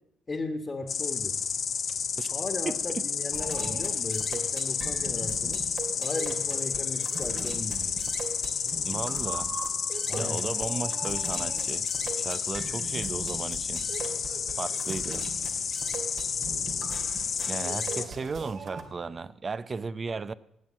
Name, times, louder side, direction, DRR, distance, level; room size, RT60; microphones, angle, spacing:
voice 1, 0.3-1.3 2.3-5.6 6.0-7.9 10.1-10.4 17.7-17.8, left 3 dB, 30° left, 5 dB, 1.5 m, -36 dB
sound 1, 0.8-19.3, right 4 dB, 85° right, 3.1 m, -54 dB
Insect, 0.9-18.0, left 6 dB, 55° left, 1.1 m, -31 dB
sound 2, 3.3-18.8, right 4 dB, 65° right, 2.4 m, -40 dB
voice 2, 8.8-9.5 10.1-11.9 12.2-13.8 14.6-15.2 17.5-20.3, right 4 dB, 35° right, 17 dB, 0.6 m, -35 dB
19.0 x 7.9 x 7.5 m, 0.80 s
cardioid pair, 90°, 0 cm